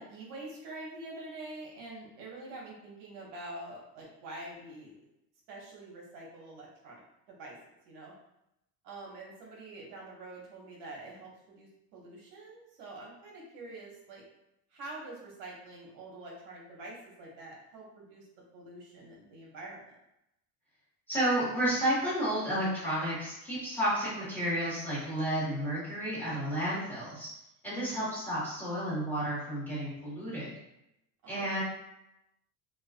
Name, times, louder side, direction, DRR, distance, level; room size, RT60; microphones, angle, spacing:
voice 1, 0.0-5.0 5.5-7.6 7.8-8.1 8.8-14.2 14.7-18.2 18.5-19.9 31.2-31.6, right 2 dB, 80° right, -3 dB, 0.8 m, -46 dB
voice 2, 21.1-27.3 27.6-30.5 31.3-31.6, right 1 dB, 5° left, -10 dB, 1.4 m, -31 dB
2.4 x 2.2 x 2.4 m, 0.85 s
cardioid pair, 115°, 40 cm